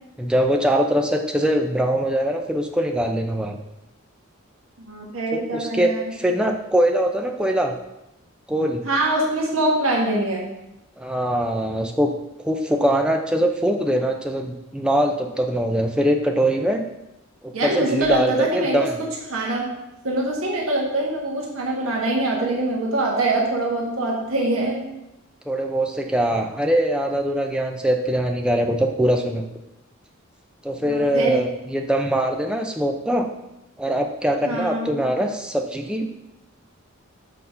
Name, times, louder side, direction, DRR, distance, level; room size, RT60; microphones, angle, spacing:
voice 1, 0.2-3.6 5.3-7.7 8.5-8.8 11.0-12.1 12.4-16.8 17.4-18.5 18.7-19.0 25.5-29.4 30.6-33.3 33.8-36.1, right 1 dB, 5° right, 3 dB, 0.5 m, -22 dB
voice 2, 4.8-6.0 8.8-10.4 17.5-18.8 19.3-19.7 20.0-24.8 30.8-31.4 34.4-34.9, right 2 dB, 80° right, -2 dB, 1.4 m, -23 dB
6.5 x 4.1 x 5.5 m, 0.92 s
head